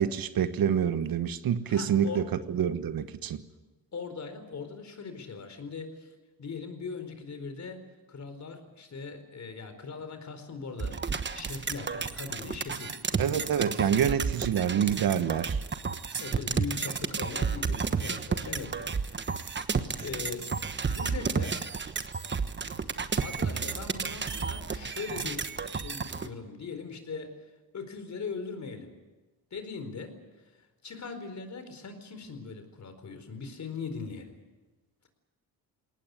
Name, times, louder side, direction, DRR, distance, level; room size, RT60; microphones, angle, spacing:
voice 1, 0.0-3.4 13.2-15.6, right 8 dB, 65° right, 12 dB, 1.3 m, -27 dB
voice 2, 1.7-2.3 3.9-6.1 6.4-7.8 8.1-14.2 16.2-19.4 19.8-20.5 20.9-21.6 23.2-27.3 27.7-28.9 29.5-30.6 30.8-34.3, left 4 dB, 45° left, 8 dB, 4.4 m, -40 dB
sound 1, 10.8-26.3, right 5 dB, 30° right, 1.3 m, -32 dB
21.0 x 18.5 x 9.8 m, 1.2 s
cardioid pair, 95°, 38 cm